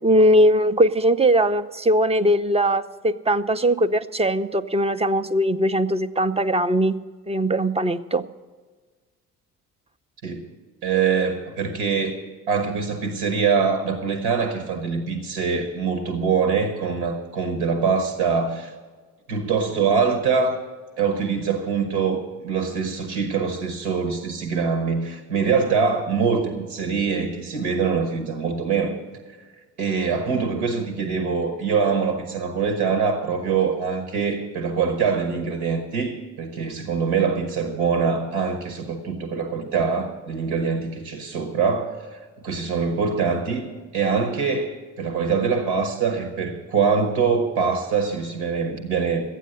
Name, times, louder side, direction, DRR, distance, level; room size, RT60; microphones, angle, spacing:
voice 1, 0.0-7.0 7.3-8.2, right 1 dB, 15° right, 11 dB, 0.7 m, -20 dB
voice 2, 10.8-12.1 12.5-18.7 19.3-20.6 21.0-29.0 29.8-49.3, right 5 dB, 75° right, 5 dB, 1.4 m, -24 dB
13.5 x 9.2 x 7.7 m, 1.4 s
figure-of-eight pair, 40°, 44 cm